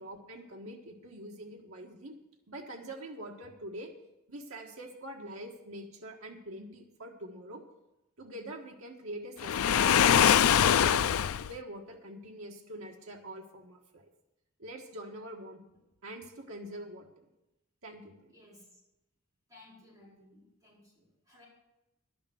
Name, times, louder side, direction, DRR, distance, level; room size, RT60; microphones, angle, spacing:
voice 1, 0.0-2.2 2.5-3.9 4.3-7.6 8.2-11.0 11.5-14.1 14.6-15.6 16.0-17.3 17.8-18.4, right 1 dB, 75° right, 0 dB, 1.5 m, -44 dB
Waves surf, 9.4-11.5, left 9 dB, 85° left, 0.4 m, -23 dB
voice 2, 18.3-18.8 19.5-21.5, left 2 dB, 15° right, -6 dB, 4.7 m, -58 dB
11.5 x 7.0 x 8.1 m, 0.94 s
head